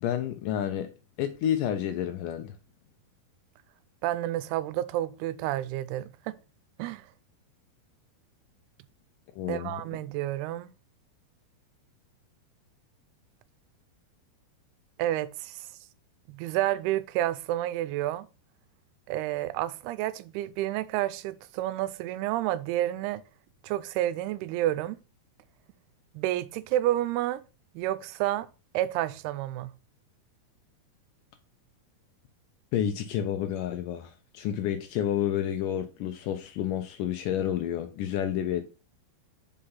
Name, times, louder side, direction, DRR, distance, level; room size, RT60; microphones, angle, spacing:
voice 1, 0.0-0.9 1.2-2.5 9.4-9.8 32.7-38.7, left 10 dB, 80° left, 1.9 m, -30 dB
voice 2, 4.0-6.4 6.8-7.1 9.5-10.7 15.0-15.7 16.3-18.3 19.1-23.2 23.6-25.0 26.1-27.4 27.8-28.5 28.7-29.7, right 14 dB, 90° right, 2.6 m, -30 dB
5.7 x 5.1 x 5.5 m
omnidirectional pair, 4.5 m